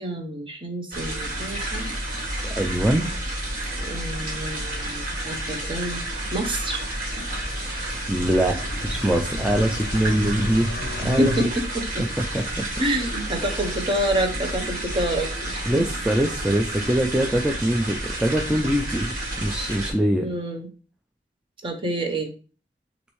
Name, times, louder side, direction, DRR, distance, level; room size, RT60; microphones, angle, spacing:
voice 1, 0.0-1.9 3.8-6.0 6.3-6.8 11.2-12.0 12.8-15.6 20.2-20.7 21.6-22.3, right 1 dB, 30° right, 4 dB, 0.8 m, -27 dB
sound 1, 0.9-19.9, right 1 dB, 50° right, 1.9 m, -30 dB
voice 2, 2.4-3.1 8.1-11.5 12.3-12.7 13.4-13.7 15.7-20.3, right 1 dB, 5° right, 2 dB, 0.4 m, -23 dB
sound 2, 6.7-11.5, left 2 dB, 60° left, 0.5 m, -33 dB
6.4 x 2.6 x 3.0 m, 0.36 s
head